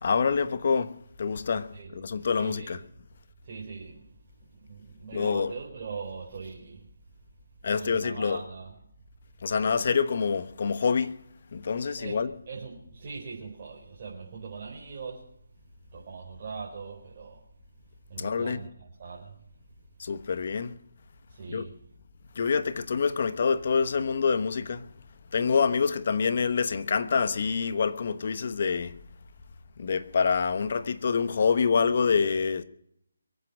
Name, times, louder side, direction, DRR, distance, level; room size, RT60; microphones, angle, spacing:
voice 1, 0.0-2.8 5.1-5.5 7.6-8.4 9.4-11.1 11.5-12.3 18.2-18.6 20.0-20.8 21.5-21.7 22.3-24.9 25.3-29.0 29.8-32.6, left 5 dB, 50° left, 1.1 m, -26 dB
voice 2, 2.3-2.8 3.4-4.1 4.4-6.9 7.7-8.7 12.0-15.3 15.9-17.4 18.1-19.4 21.3-21.8, right 5 dB, 40° right, 4.6 m, -41 dB
23.0 x 9.1 x 6.3 m
figure-of-eight pair, 155°, 0 cm